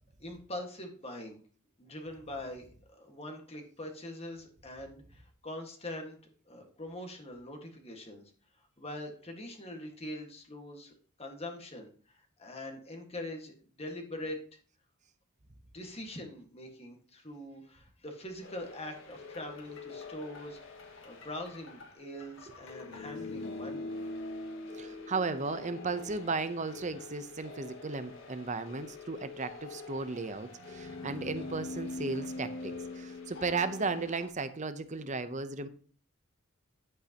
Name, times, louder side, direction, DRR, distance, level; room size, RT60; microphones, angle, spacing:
voice 1, 0.2-1.4 1.8-2.7 2.9-6.2 6.5-8.2 8.8-10.9 11.2-14.4 15.7-20.6 21.0-23.9, left 1 dB, 30° left, 3 dB, 1.7 m, -43 dB
sound 1, 18.4-34.3, left 3 dB, 60° left, 1.8 m, -44 dB
voice 2, 24.8-35.7, right 4 dB, 35° right, 11 dB, 0.7 m, -35 dB
11.0 x 8.3 x 2.9 m, 0.43 s
head